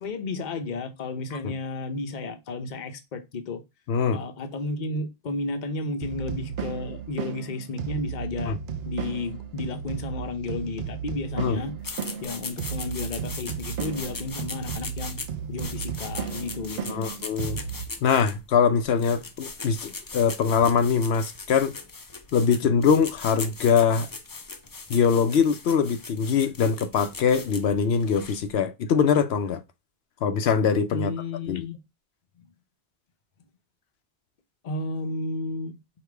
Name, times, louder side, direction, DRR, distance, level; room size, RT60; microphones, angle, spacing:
voice 1, 0.0-3.6 4.1-8.6 8.9-11.7 12.2-15.2 15.5-17.1 22.8-22.9 30.9-31.8 32.4-32.5 34.6-35.8, left 2 dB, 50° left, 0.8 m, -33 dB
voice 2, 3.9-4.2 8.5-8.6 11.4-11.6 16.9-17.6 18.0-21.7 22.3-24.1 24.9-29.6 30.2-31.1 31.5-31.6, left 6 dB, 85° left, 0.9 m, -23 dB
sound 1, 6.0-17.9, right 7 dB, 75° right, 0.8 m, -34 dB
sound 2, 11.8-28.5, left 3 dB, 30° left, 0.5 m, -39 dB
4.8 x 3.0 x 3.3 m
omnidirectional pair, 1.0 m